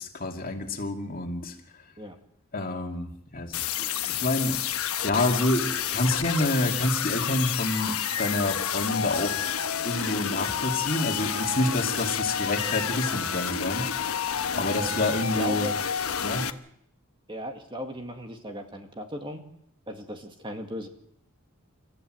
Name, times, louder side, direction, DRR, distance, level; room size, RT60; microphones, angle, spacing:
voice 1, 0.0-1.5 2.5-4.6 5.0-9.4 9.8-13.9 14.6-15.7 16.2-16.5, left 2 dB, 40° left, 2 dB, 2.7 m, -28 dB
sound 1, 3.5-16.5, left 8 dB, 85° left, 1.1 m, -29 dB
voice 2, 15.3-15.7 17.3-19.4 19.9-20.9, equal, 20° right, 4 dB, 2.0 m, -36 dB
29.5 x 14.0 x 7.8 m, 0.74 s
head